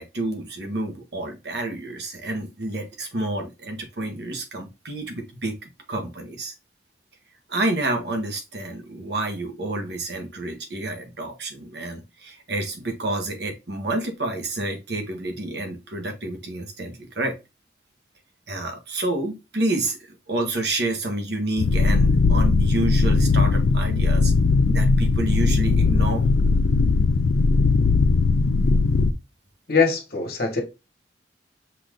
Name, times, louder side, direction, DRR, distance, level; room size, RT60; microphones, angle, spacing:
voice 1, 0.0-6.5 7.5-17.3 18.5-24.3 24.7-26.2, right 2 dB, 65° right, 1.2 m, -29 dB
sound 1, 21.6-29.1, left 4 dB, 85° left, 0.5 m, -19 dB
voice 2, 29.7-30.6, left 4 dB, 55° left, 1.5 m, -22 dB
5.5 x 2.7 x 3.6 m
head